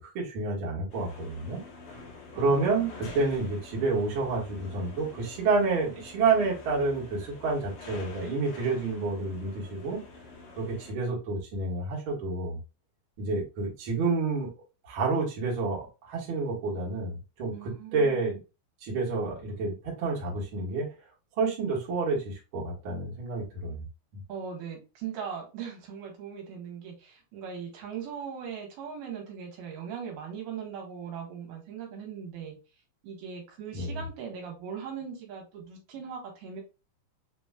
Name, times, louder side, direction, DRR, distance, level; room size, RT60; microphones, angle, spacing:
voice 1, 0.1-1.6 2.3-10.0 10.6-12.6 13.2-14.5 14.9-18.4 18.8-20.9 21.4-23.8 33.7-34.0, right 3 dB, 45° right, -4 dB, 1.8 m, -29 dB
sound 1, 0.9-10.9, left 4 dB, 75° left, 1.3 m, -47 dB
voice 2, 2.4-3.1 17.5-18.4 24.3-32.6 33.0-36.6, right 7 dB, 75° right, 1 dB, 3.0 m, -40 dB
5.9 x 3.1 x 2.3 m, 0.30 s
omnidirectional pair, 4.5 m